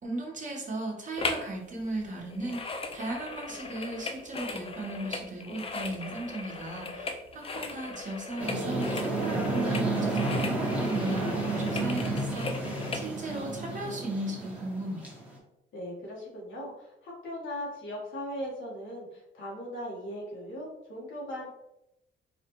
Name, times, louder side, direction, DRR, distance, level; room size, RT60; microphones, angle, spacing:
voice 1, 0.0-15.0, right 1 dB, 40° right, -2 dB, 1.2 m, -36 dB
sound 1, 1.2-1.5 1.8-13.1 13.6-13.7, left 3 dB, 30° left, 0.4 m, -38 dB
sound 2, 8.4-15.4, right 2 dB, 5° right, 1.0 m, -31 dB
voice 2, 15.7-21.5, equal, 75° left, -2 dB, 1.3 m, -39 dB
4.1 x 2.4 x 3.0 m, 0.87 s
cardioid pair, 90°, 20 cm